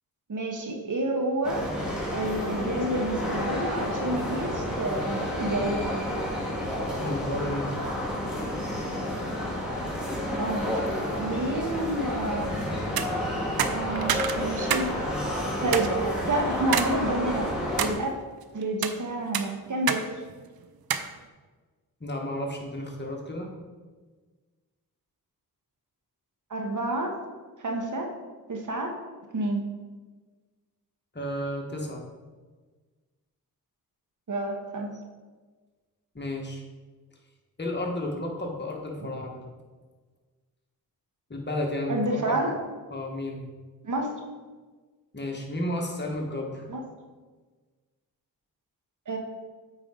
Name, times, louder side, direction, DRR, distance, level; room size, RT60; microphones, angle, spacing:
voice 1, 0.3-1.6 2.1-5.8 10.4-10.7 11.2-12.5 13.6-14.8 15.4-15.9 16.3-17.5 17.8-18.1 18.5-20.0 26.5-27.1 27.6-28.1 28.5-28.9 29.3-29.6 34.3-34.9 39.0-39.1 41.9-42.5 43.8-44.1 46.7-46.8 49.1-49.2, right 2 dB, 55° right, 2 dB, 1.3 m, -29 dB
sound 1, 1.4-17.9, left 1 dB, ahead, 2.1 m, -30 dB
voice 2, 7.0-8.0 22.0-23.5 31.1-32.0 36.1-36.6 37.6-39.5 41.3-42.0 42.3-42.4 42.9-43.4 45.1-46.7, left 1 dB, 30° left, 0 dB, 1.5 m, -32 dB
sound 2, 12.8-13.1 13.6-14.9 15.2-15.3 15.7-15.9 16.7-16.9 17.4-18.0 18.6-19.0 19.3-20.0 20.3-20.4 20.9-21.1, right 8 dB, 75° right, 0.6 m, -27 dB
8.6 x 4.8 x 3.8 m, 1.4 s
cardioid pair, 70°, 37 cm